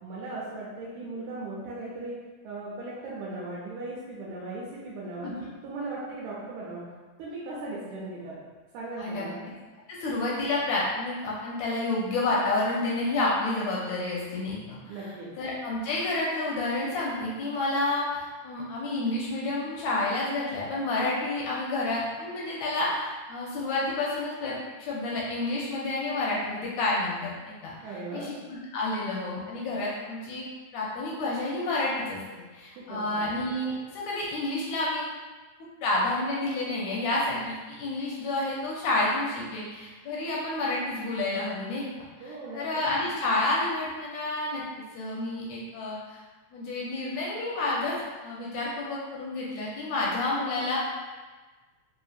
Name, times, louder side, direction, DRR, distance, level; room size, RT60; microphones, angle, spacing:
voice 1, 0.0-2.2 2.4-5.3 5.6-6.8 7.2-8.4 8.7-9.4 14.9-15.3 27.8-28.3 32.8-33.2 42.2-42.8, right 2 dB, 80° right, -6 dB, 2.0 m, -38 dB
voice 2, 9.9-15.0 15.4-27.7 28.1-30.5 30.7-32.2 32.5-35.0 35.8-46.2 46.5-47.9 48.2-50.8, left 2 dB, 80° left, -5 dB, 1.7 m, -29 dB
5.1 x 2.7 x 2.4 m, 1.3 s
omnidirectional pair, 3.5 m